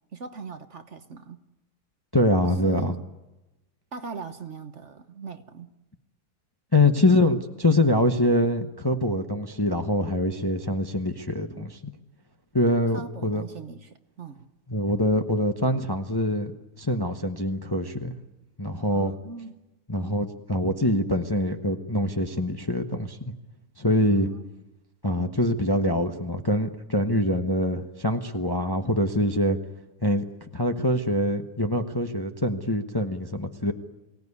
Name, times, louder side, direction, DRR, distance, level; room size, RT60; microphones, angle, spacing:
voice 1, 0.1-1.4 2.5-3.0 3.9-5.7 11.5-11.7 12.9-14.5 18.9-19.6 20.0-20.2 24.1-24.5, right 5 dB, 50° right, 9 dB, 1.3 m, -40 dB
voice 2, 2.1-3.0 6.7-11.9 12.5-13.4 14.7-16.5 16.8-18.1 18.6-19.1 19.9-23.2 23.8-24.3 25.0-29.6 30.0-33.7, left 1 dB, 15° left, 5 dB, 0.9 m, -24 dB
23.0 x 17.5 x 9.7 m, 1.0 s
omnidirectional pair, 1.7 m